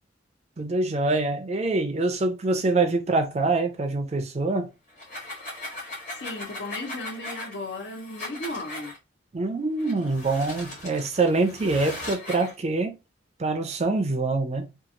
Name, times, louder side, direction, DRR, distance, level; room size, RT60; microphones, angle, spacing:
voice 1, 0.6-4.7 9.3-13.0 13.4-14.7, right 3 dB, 35° right, 0.5 m, -25 dB
sound 1, 4.9-9.0 9.8-12.5, left 1 dB, 40° left, 1.2 m, -39 dB
voice 2, 6.2-8.9, left 2 dB, 60° left, 0.6 m, -35 dB
2.9 x 2.4 x 2.5 m
head